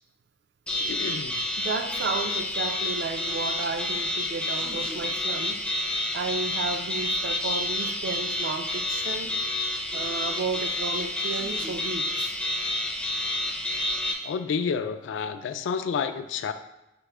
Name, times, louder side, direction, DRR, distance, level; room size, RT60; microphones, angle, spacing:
sound 1, 0.7-14.1, left 1 dB, 5° left, 0.4 m, -29 dB
voice 1, 0.8-1.3 14.2-16.5, left 6 dB, 75° left, 10 dB, 0.3 m, -29 dB
voice 2, 1.6-5.6 6.1-9.3 9.9-12.3, right 4 dB, 65° right, 7 dB, 0.4 m, -33 dB
5.9 x 2.1 x 3.3 m, 0.93 s
head